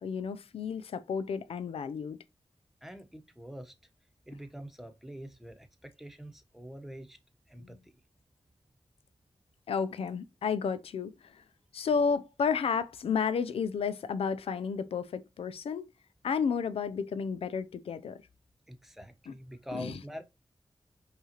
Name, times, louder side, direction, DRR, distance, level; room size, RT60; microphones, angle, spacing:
voice 1, 0.0-2.2 7.6-7.7 9.7-11.4 11.7-15.9 16.2-18.2 19.3-19.4 19.7-20.0, left 6 dB, 85° left, 0.4 m, -32 dB
voice 2, 2.8-3.7 4.3-7.2 7.5-7.9 18.7-20.2, equal, 5° right, 1.0 m, -45 dB
5.4 x 2.5 x 2.9 m
cardioid pair, 45°, 10 cm